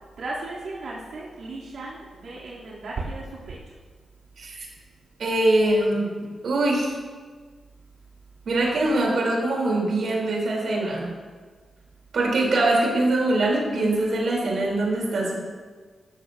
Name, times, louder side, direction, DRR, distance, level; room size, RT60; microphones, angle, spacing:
voice 1, 0.2-3.8, right 2 dB, 90° right, -7 dB, 2.7 m, -35 dB
voice 2, 5.2-6.1 6.4-6.9 8.5-11.1 12.1-15.4, right 2 dB, 65° right, -2 dB, 3.1 m, -23 dB
14.0 x 14.0 x 2.6 m, 1.5 s
wide cardioid pair, 150°, 0 cm